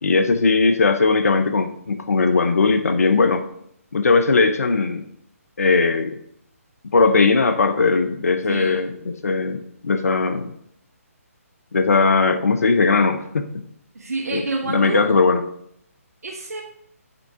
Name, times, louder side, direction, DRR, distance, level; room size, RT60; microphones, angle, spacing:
voice 1, 0.0-3.5 3.9-5.0 5.6-6.2 6.9-10.5 11.7-13.5 14.3-15.4, left 4 dB, 75° left, 8 dB, 0.7 m, -19 dB
voice 2, 8.5-8.8 13.9-15.0 16.2-16.6, right 3 dB, 80° right, 0 dB, 1.2 m, -28 dB
9.0 x 3.7 x 4.4 m, 0.71 s
hypercardioid pair, 150°, 8 cm